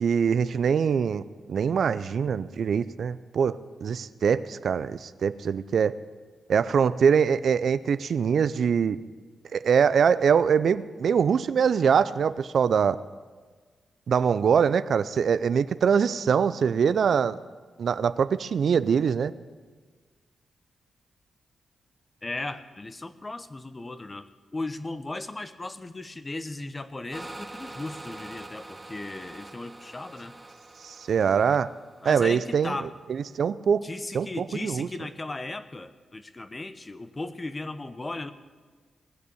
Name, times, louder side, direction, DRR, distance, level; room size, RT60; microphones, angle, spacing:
voice 1, 0.0-1.2 1.5-5.9 6.5-9.0 9.5-13.0 14.1-17.4 17.8-19.3 30.8-31.7 32.0-33.8 34.1-34.9, right 7 dB, 65° right, 15 dB, 0.5 m, -23 dB
voice 2, 22.2-30.4 32.0-32.9 33.8-38.3, left 2 dB, 30° left, 13 dB, 1.0 m, -36 dB
sound 1, 27.1-32.6, right 2 dB, 20° right, 1.3 m, -44 dB
19.0 x 6.8 x 9.9 m, 1.4 s
supercardioid pair, 45°, 0 cm